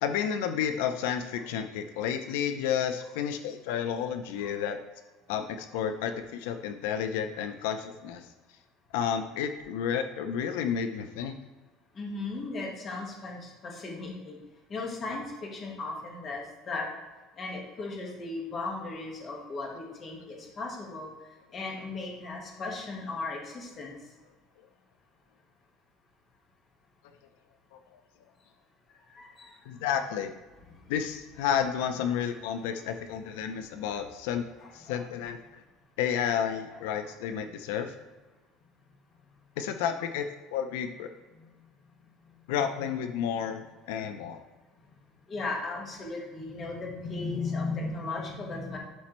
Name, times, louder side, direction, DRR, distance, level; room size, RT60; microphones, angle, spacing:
voice 1, 0.0-4.8 5.3-8.3 8.9-11.4 29.7-30.3 30.9-34.4 34.7-35.4 36.0-37.9 39.6-41.1 42.5-44.4, left 8 dB, 85° left, 8 dB, 0.5 m, -31 dB
voice 2, 11.9-14.4 14.7-16.9 17.3-24.2 28.9-29.8 30.7-30.9 32.5-32.9 33.9-34.0 34.6-35.0 36.1-37.1 41.3-41.7 41.9-42.5 44.0-44.1 44.9-45.0 45.3-48.8, left 3 dB, 25° left, 0 dB, 1.4 m, -37 dB
11.5 x 4.3 x 3.0 m, 1.3 s
cardioid pair, 175°, 0 cm